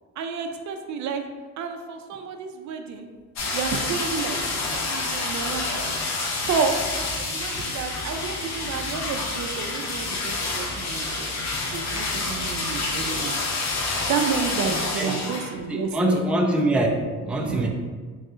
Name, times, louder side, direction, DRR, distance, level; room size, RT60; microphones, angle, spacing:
voice 1, 0.2-1.2 1.6-3.1 3.5-4.4 4.6-5.7 6.4-11.3 11.7-13.3 14.1-16.2 17.4-17.7, right 6 dB, 70° right, 5 dB, 0.5 m, -30 dB
sound 1, 3.4-15.5 15.8-15.9, left 3 dB, 65° left, 0.7 m, -28 dB
voice 2, 15.0-15.3 15.7-16.9 17.2-17.7, right 1 dB, 5° right, 0 dB, 0.4 m, -24 dB
3.1 x 2.6 x 3.7 m, 1.5 s
cardioid pair, 90°, 30 cm